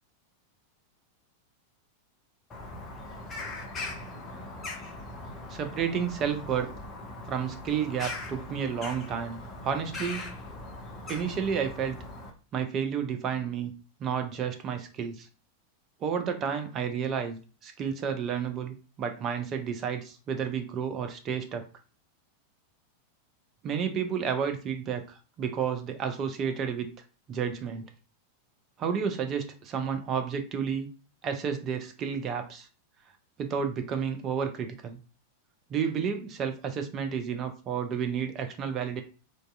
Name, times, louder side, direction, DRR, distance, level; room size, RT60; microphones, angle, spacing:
Bird vocalization bird call bird song, 2.5-12.3, left 2 dB, 20° left, 0.6 m, -40 dB
voice 1, 5.5-6.7 7.3-10.3 11.1-12.0 12.5-13.7 14.0-15.3 16.0-21.6 23.6-26.9 27.3-27.8 28.8-30.9 31.2-32.7 33.4-35.0 35.7-39.0, right 7 dB, 30° right, 6 dB, 0.4 m, -31 dB
2.6 x 2.2 x 2.3 m, 0.36 s
figure-of-eight pair, 90°, 0 cm